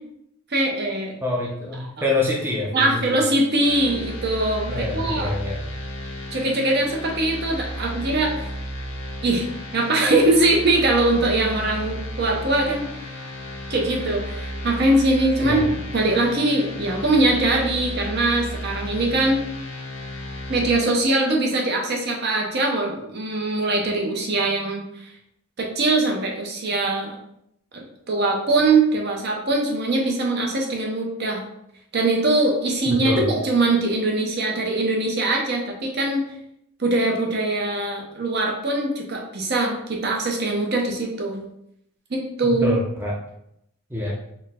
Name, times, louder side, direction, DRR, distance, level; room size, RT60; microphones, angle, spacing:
voice 1, 0.5-1.1 2.0-2.1 2.7-5.3 6.3-8.3 9.2-13.1 13.7-19.4 20.5-24.8 25.6-27.2 27.7-31.4 31.9-36.3 36.8-41.4 42.1-42.8, right 2 dB, 50° right, 0 dB, 0.7 m, -22 dB
voice 2, 1.2-3.2 4.7-5.6 15.4-15.7 32.9-33.3 42.4-43.1 43.9-44.2, left 2 dB, 10° right, -3 dB, 0.5 m, -26 dB
sound 1, 3.6-20.7, equal, 70° left, 0.8 m, -33 dB
4.4 x 2.1 x 3.5 m, 0.77 s
head